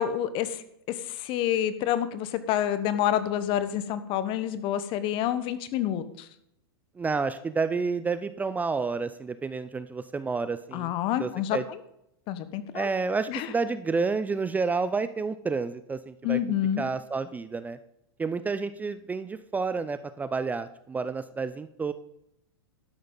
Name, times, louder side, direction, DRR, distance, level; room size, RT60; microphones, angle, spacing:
voice 1, 0.0-6.3 10.7-11.8 12.3-12.9 13.3-13.5 16.2-16.8, left 11 dB, 40° left, 13 dB, 1.1 m, -28 dB
voice 2, 7.0-10.9 11.2-11.6 12.7-16.4 16.8-17.8 18.2-21.9, right 4 dB, 10° right, 13 dB, 0.5 m, -30 dB
12.5 x 10.5 x 4.0 m, 0.77 s
hypercardioid pair, 105°, 13 cm